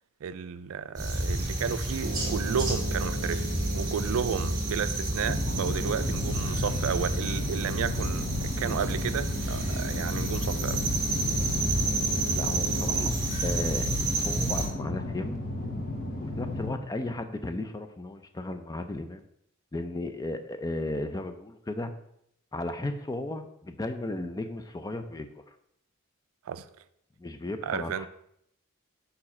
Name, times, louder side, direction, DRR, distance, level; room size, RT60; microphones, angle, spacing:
voice 1, 0.2-10.8 26.5-26.6 27.6-28.1, right 7 dB, 75° right, 13 dB, 0.4 m, -32 dB
sound 1, 1.0-14.7, right 2 dB, 20° right, 1.8 m, -30 dB
Piano, 2.0-13.0, right 2 dB, 45° right, 0.8 m, -40 dB
sound 2, 5.2-16.7, left 2 dB, 45° left, 1.0 m, -34 dB
voice 2, 12.3-15.4 16.2-19.2 19.7-21.9 22.5-25.4 27.2-28.1, left 2 dB, 15° left, 8 dB, 0.4 m, -35 dB
5.3 x 4.7 x 4.2 m, 0.73 s
head